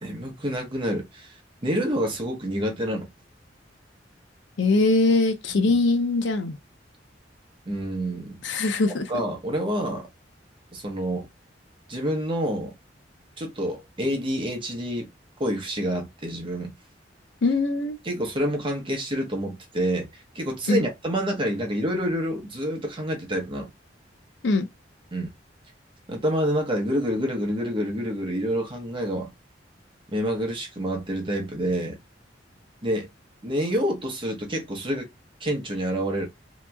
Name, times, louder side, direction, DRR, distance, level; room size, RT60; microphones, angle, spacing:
voice 1, 0.0-3.1 5.6-5.8 7.7-8.4 9.1-10.1 10.7-11.3 11.9-12.7 13.4-15.1 15.4-16.7 18.0-23.7 25.1-25.3 26.1-29.3 30.1-32.0 32.8-33.1 33.4-35.1 35.4-36.3, equal, 30° right, 0.8 m, -28 dB
voice 2, 4.6-6.6 8.4-9.0 17.4-18.0 20.7-20.8 24.4-24.7, left 3 dB, 70° left, 0.5 m, -22 dB
2.9 x 2.7 x 2.2 m
head